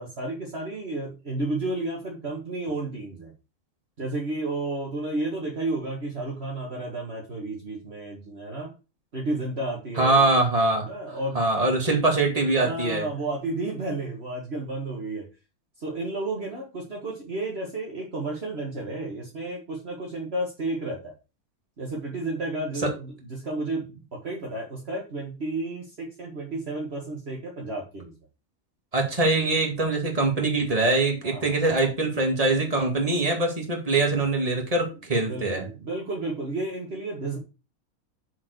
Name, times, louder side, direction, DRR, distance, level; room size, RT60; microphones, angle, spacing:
voice 1, 0.0-3.3 4.0-8.7 9.1-10.3 10.9-11.5 12.6-15.3 15.8-21.1 21.8-28.1 31.2-31.5 35.3-37.4, right 2 dB, 45° right, -2 dB, 1.9 m, -32 dB
voice 2, 10.0-10.9 11.3-13.1 28.9-35.7, right 2 dB, 25° right, 1 dB, 2.3 m, -23 dB
7.1 x 4.6 x 6.6 m, 0.30 s
omnidirectional pair, 1.5 m